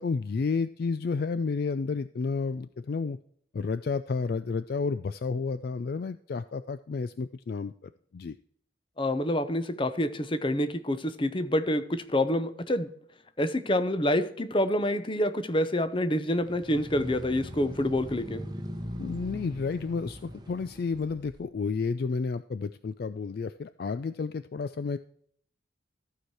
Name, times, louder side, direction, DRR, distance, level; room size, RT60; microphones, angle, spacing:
voice 1, 0.0-3.2 3.5-7.7 8.1-8.3 19.0-25.0, left 4 dB, 50° left, 12 dB, 0.3 m, -31 dB
voice 2, 9.0-12.9 13.4-18.4, left 1 dB, 25° left, 11 dB, 0.7 m, -27 dB
sound 1, 16.4-21.4, equal, 20° right, 0.8 m, -40 dB
14.5 x 4.8 x 4.4 m, 0.63 s
head